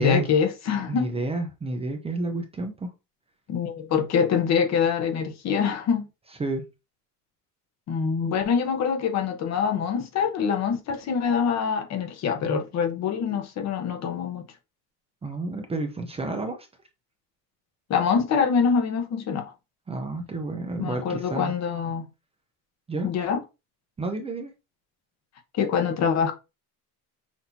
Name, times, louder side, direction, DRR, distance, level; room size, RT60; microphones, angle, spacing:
voice 1, 0.0-1.1 3.5-6.1 7.9-14.4 17.9-19.5 20.8-22.1 23.0-23.4 25.5-26.3, left 6 dB, 45° left, 1.0 m, -25 dB
voice 2, 0.9-2.9 6.4-6.6 15.2-16.7 19.9-21.5 22.9-23.1 24.0-24.5, right 2 dB, 15° right, 0.6 m, -30 dB
6.0 x 2.8 x 2.7 m
cardioid pair, 145°, 37 cm